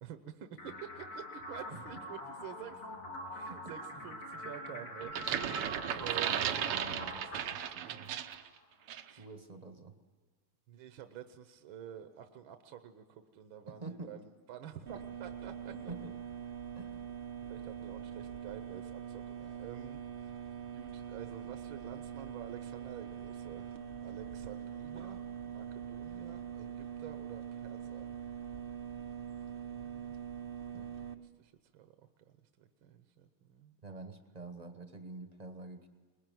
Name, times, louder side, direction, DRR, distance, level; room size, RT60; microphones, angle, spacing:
voice 1, 0.0-5.3 6.0-6.5 9.1-9.3 10.7-15.9 17.5-23.8 24.0-28.1 29.7-30.1 31.2-33.8, right 9 dB, 70° right, 9 dB, 1.6 m, -49 dB
sound 1, 0.6-8.6, left 1 dB, 80° left, 4.7 m, -45 dB
sound 2, 5.0-8.5 8.9-9.1, right 10 dB, 85° right, 1.8 m, -35 dB
voice 2, 5.8-8.2 9.2-10.0 13.7-14.1 15.9-16.1 16.7-17.0 30.7-30.9 33.8-35.9, right 3 dB, 25° right, 8 dB, 0.9 m, -47 dB
sound 3, 14.9-31.1, right 8 dB, 45° right, 0.7 m, -43 dB
21.5 x 20.5 x 9.2 m, 1.4 s
omnidirectional pair, 2.4 m